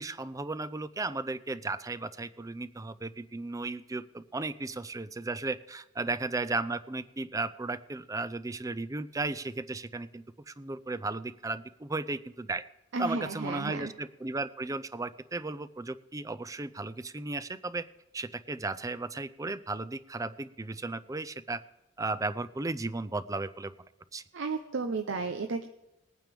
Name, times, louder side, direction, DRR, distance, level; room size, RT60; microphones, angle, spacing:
voice 1, 0.0-12.6 13.0-17.9 18.1-21.6 22.0-23.7 24.1-24.2, right 3 dB, 15° right, 14 dB, 0.5 m, -35 dB
voice 2, 12.9-13.9 24.3-25.7, right 3 dB, 75° right, 6 dB, 0.7 m, -33 dB
20.5 x 9.2 x 3.5 m, 0.93 s
head